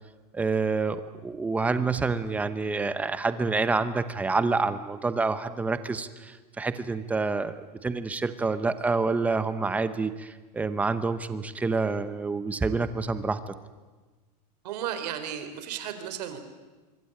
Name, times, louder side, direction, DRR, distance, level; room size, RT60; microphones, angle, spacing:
voice 1, 0.3-13.5, right 4 dB, 5° right, 12 dB, 0.8 m, -28 dB
voice 2, 14.6-16.4, right 9 dB, 75° right, 9 dB, 3.7 m, -34 dB
25.5 x 23.5 x 8.9 m, 1.3 s
supercardioid pair, 175°, 21 cm